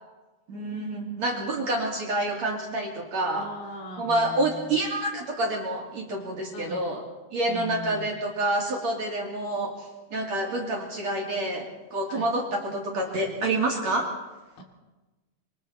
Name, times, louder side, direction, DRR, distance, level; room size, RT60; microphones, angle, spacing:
voice 1, 0.5-3.5 4.0-7.0 7.3-14.1, right 2 dB, 45° right, -1 dB, 3.2 m, -28 dB
voice 2, 3.3-4.8 6.5-6.9 7.5-8.1 12.1-12.3 14.6-14.7, right 1 dB, 60° left, 1 dB, 4.4 m, -40 dB
26.0 x 25.0 x 4.2 m, 1.1 s
omnidirectional pair, 5.2 m